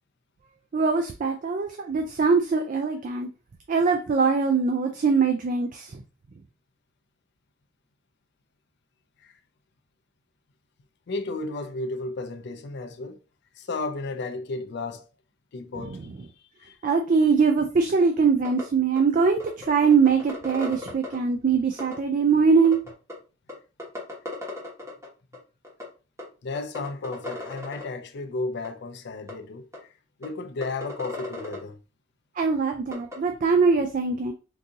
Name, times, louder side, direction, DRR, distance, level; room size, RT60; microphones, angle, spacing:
voice 1, 0.7-3.3 3.7-6.0 15.8-16.0 16.8-22.8 32.4-34.3, right 5 dB, 45° right, 0.4 m, -22 dB
voice 2, 11.1-13.2 13.5-15.1 15.5-16.1 16.6-16.8 26.4-29.7 30.2-31.8, left 3 dB, 60° left, 0.4 m, -33 dB
sound 1, 18.4-18.6 19.0-19.1 19.4-21.2 21.8-21.9 22.6-23.1 23.5-23.6 23.8-25.1 25.3-25.4 25.6-25.8 26.2-26.3 26.5-27.8 28.6-28.7 29.3-29.4 29.7-29.8 30.2-30.3 30.6-31.6 32.9-33.1, left 1 dB, 15° right, 1.2 m, -35 dB
3.7 x 2.7 x 2.7 m
head